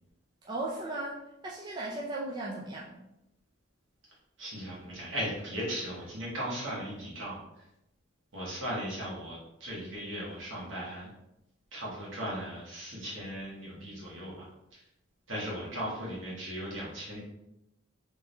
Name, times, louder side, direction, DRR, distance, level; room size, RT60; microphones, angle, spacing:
voice 1, 0.4-3.0, right 2 dB, 20° right, -4 dB, 0.3 m, -37 dB
voice 2, 4.4-7.6 8.3-11.1 11.7-14.8 15.3-17.2, equal, 65° right, -5 dB, 1.4 m, -37 dB
3.5 x 3.3 x 2.6 m, 0.89 s
head